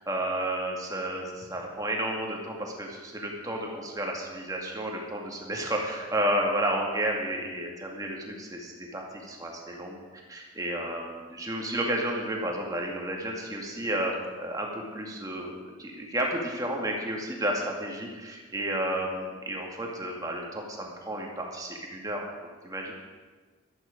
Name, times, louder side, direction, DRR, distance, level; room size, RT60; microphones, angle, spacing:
voice 1, 0.0-10.0 10.3-22.3 22.6-22.9, right 1 dB, 15° right, 0 dB, 2.0 m, -32 dB
14.0 x 12.0 x 5.1 m, 1.3 s
head